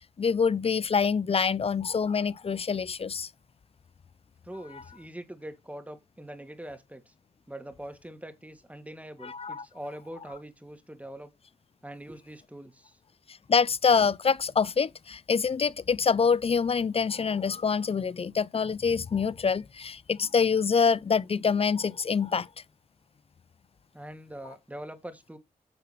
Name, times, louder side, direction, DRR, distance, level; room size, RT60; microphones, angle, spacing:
voice 1, 0.2-3.3 9.2-9.6 13.5-22.5, left 5 dB, 40° left, 0.6 m, -25 dB
voice 2, 4.4-7.1 7.5-11.3 11.8-13.0 23.9-25.4, right 1 dB, 10° right, 2.6 m, -43 dB
9.9 x 6.7 x 3.3 m
supercardioid pair, 50°, 15 cm